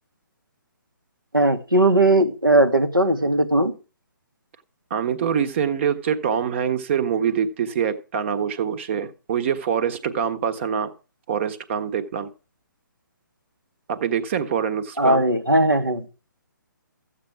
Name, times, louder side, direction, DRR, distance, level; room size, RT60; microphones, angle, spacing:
voice 1, 1.3-3.7 15.0-16.0, right 1 dB, 90° right, 1.8 m, -18 dB
voice 2, 4.9-10.9 11.3-12.3 13.9-15.2, right 8 dB, 35° right, 1.3 m, -24 dB
14.0 x 8.6 x 4.7 m
figure-of-eight pair, 135°, 11 cm